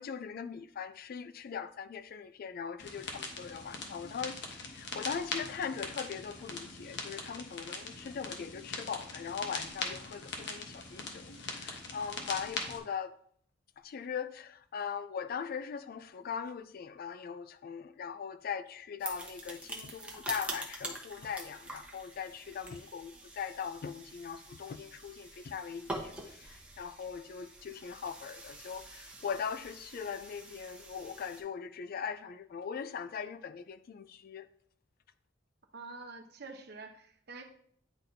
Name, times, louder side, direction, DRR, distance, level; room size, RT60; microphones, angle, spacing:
voice 1, 0.0-13.1 13.8-34.5, left 7 dB, 50° left, 0.3 m, -40 dB
sound 1, 2.8-12.8, left 3 dB, 70° left, 1.0 m, -41 dB
sound 2, 19.0-31.4, right 2 dB, 5° right, 0.9 m, -45 dB
voice 2, 35.7-37.4, right 3 dB, 60° right, 0.8 m, -47 dB
9.7 x 4.1 x 2.6 m
head